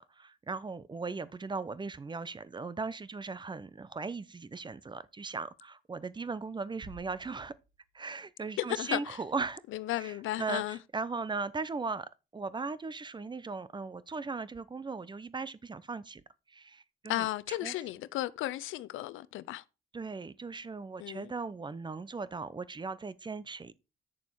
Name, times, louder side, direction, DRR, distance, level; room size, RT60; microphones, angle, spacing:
voice 1, 0.2-7.5 7.9-9.6 10.0-16.2 16.5-17.7 19.9-23.7, right 4 dB, 25° right, 0.7 m, -38 dB
sound 1, 6.8-8.6, right 3 dB, 40° right, 2.6 m, -54 dB
voice 2, 8.6-9.2 9.7-10.8 17.1-19.6 21.0-21.3, left 15 dB, 85° left, 0.6 m, -34 dB
8.7 x 6.8 x 4.6 m
cardioid pair, 90°, 20 cm